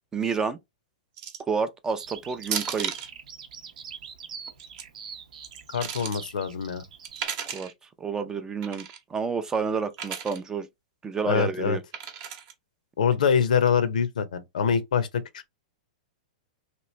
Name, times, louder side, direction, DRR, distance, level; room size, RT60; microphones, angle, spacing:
voice 1, 0.1-0.6 1.5-2.9 7.5-7.7 8.0-10.7 11.0-11.8, right 5 dB, 15° right, 0.4 m, -29 dB
sound 1, 1.2-1.5 2.4-3.1 4.5-4.8 5.4-6.2 7.0-7.7 8.6-9.0 9.9-10.4 11.9-12.5, right 8 dB, 45° right, 0.8 m, -34 dB
Bird vocalization bird call bird song, 2.0-7.3, right 7 dB, 75° right, 0.7 m, -43 dB
voice 2, 5.7-6.8 11.2-11.8 13.0-15.5, left 7 dB, 80° left, 0.6 m, -24 dB
3.0 x 2.5 x 3.1 m
hypercardioid pair, 135°, 4 cm